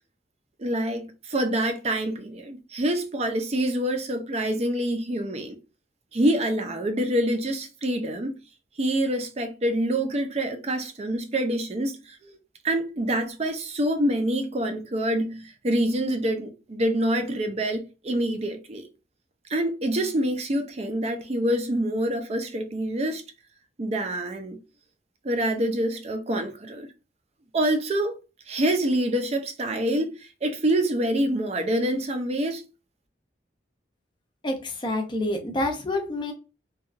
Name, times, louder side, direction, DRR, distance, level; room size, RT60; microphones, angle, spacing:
voice 1, 0.6-5.6 6.1-8.3 8.8-12.4 12.6-18.8 19.5-23.2 23.8-24.6 25.2-26.9 27.5-28.2 28.5-30.1 30.4-32.6, right 1 dB, 35° right, 0.4 m, -26 dB
voice 2, 34.4-36.3, left 1 dB, 25° left, 0.5 m, -28 dB
2.8 x 2.3 x 2.4 m
head